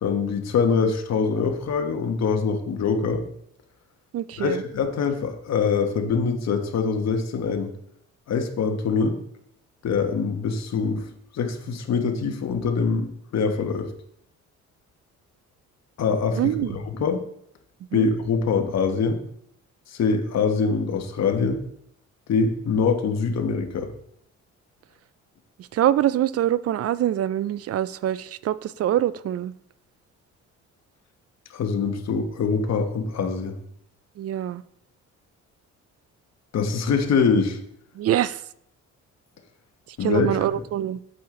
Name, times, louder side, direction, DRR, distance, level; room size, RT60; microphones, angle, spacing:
voice 1, 0.0-3.2 4.4-7.7 8.3-9.2 9.8-11.0 11.3-13.9 16.0-17.2 17.9-19.2 19.9-21.6 22.3-23.9 31.5-33.5 36.5-37.6 40.0-40.6, left 5 dB, 60° left, 1.4 m, -24 dB
voice 2, 4.1-4.6 16.4-16.8 17.9-18.1 25.7-29.5 34.2-34.6 38.0-38.4 39.9-41.0, right 12 dB, 55° right, 0.4 m, -24 dB
8.4 x 7.6 x 3.8 m
cardioid pair, 90°, 30 cm